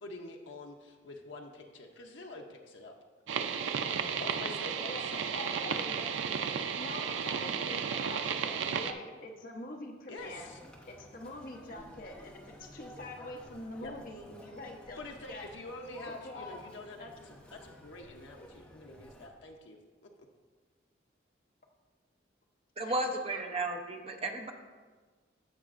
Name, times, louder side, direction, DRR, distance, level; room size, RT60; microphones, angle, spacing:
voice 1, 0.0-2.9 3.9-5.1 10.1-10.6 13.8-13.9 15.0-20.1, left 2 dB, 75° left, 1 dB, 0.7 m, -46 dB
sound 1, 3.3-8.9, right 6 dB, 85° right, 0.4 m, -33 dB
voice 2, 4.9-6.2 6.7-10.5 10.8-15.5 16.1-16.6 17.0-17.3 22.8-23.4, left 2 dB, 45° left, 1 dB, 0.9 m, -45 dB
Conversation, 10.2-19.3, equal, 5° left, 0.9 m, -53 dB
voice 3, 22.8-24.5, right 2 dB, 30° right, 4 dB, 0.6 m, -34 dB
14.5 x 5.2 x 2.5 m, 1.4 s
head